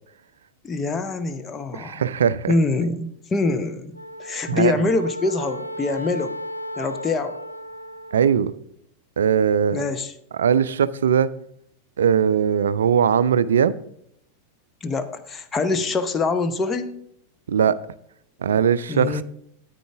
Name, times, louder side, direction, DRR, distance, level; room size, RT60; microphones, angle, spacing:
voice 1, 0.6-2.0 2.5-6.3 6.8-7.3 9.7-10.1 14.8-16.9 18.9-19.2, left 3 dB, 20° left, 7 dB, 0.7 m, -24 dB
voice 2, 1.7-2.5 4.5-4.7 8.1-8.5 9.2-9.8 10.3-11.3 12.0-13.8 17.5-17.8 18.4-19.2, right 7 dB, 65° right, 17 dB, 0.3 m, -20 dB
Wind instrument woodwind instrument, 3.9-8.4, equal, 90° left, 0.4 m, -35 dB
9.2 x 9.0 x 3.4 m, 0.73 s
figure-of-eight pair, 90°, 0 cm